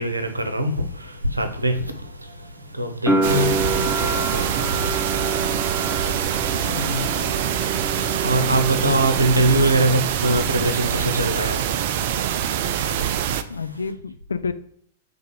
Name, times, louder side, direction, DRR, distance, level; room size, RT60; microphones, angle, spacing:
voice 1, 0.0-7.1 7.7-13.6, right 1 dB, 80° right, 0.7 m, -25 dB
sound 1, 3.1-9.9 10.1-11.0, right 2 dB, ahead, 0.6 m, -28 dB
sound 2, 3.2-13.4, right 9 dB, 50° right, 0.3 m, -24 dB
voice 2, 6.7-7.1 13.5-14.5, left 4 dB, 70° left, 0.4 m, -29 dB
3.6 x 3.5 x 4.1 m
figure-of-eight pair, 100°, 0 cm